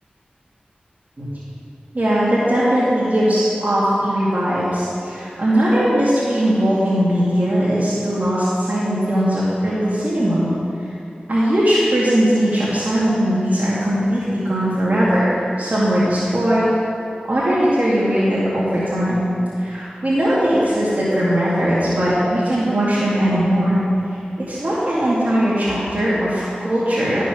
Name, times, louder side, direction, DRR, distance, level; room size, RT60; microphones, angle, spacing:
voice 1, 1.9-10.5 11.3-15.3 15.6-16.7 17.3-19.3 19.6-23.8 24.5-27.2, equal, 50° right, -10 dB, 2.4 m, -19 dB
12.5 x 5.9 x 6.3 m, 2.7 s
wide cardioid pair, 50°, 3 cm